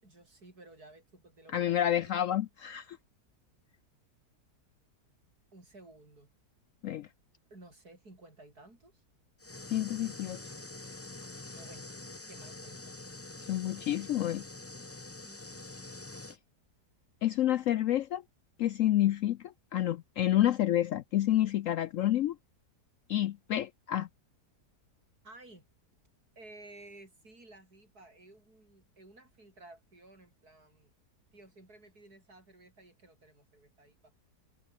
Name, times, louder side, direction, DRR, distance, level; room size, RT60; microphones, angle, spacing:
voice 1, 0.0-2.2 5.5-6.3 7.5-9.0 11.5-11.9 12.3-12.9 13.4-13.9 15.2-15.4 25.2-25.7 26.4-30.9 31.3-34.1, right 2 dB, 65° right, 7.4 m, -55 dB
voice 2, 1.5-3.0 6.8-7.1 9.7-10.4 13.5-14.4 17.2-18.2 18.6-22.4 23.1-24.1, left 12 dB, 70° left, 0.8 m, -29 dB
sound 1, 9.4-16.4, left 2 dB, 15° left, 0.5 m, -46 dB
omnidirectional pair, 1.7 m